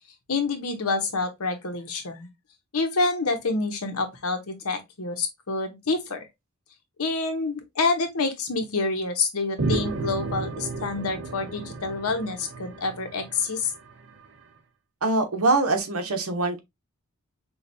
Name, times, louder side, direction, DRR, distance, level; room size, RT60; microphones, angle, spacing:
voice 1, 0.3-2.3 2.7-6.2 7.0-13.7, left 3 dB, 85° left, 1.0 m, -27 dB
sound 1, 9.6-14.3, right 3 dB, 60° right, 0.8 m, -33 dB
voice 2, 15.0-16.6, right 3 dB, 80° right, 1.1 m, -23 dB
5.7 x 2.4 x 2.7 m
head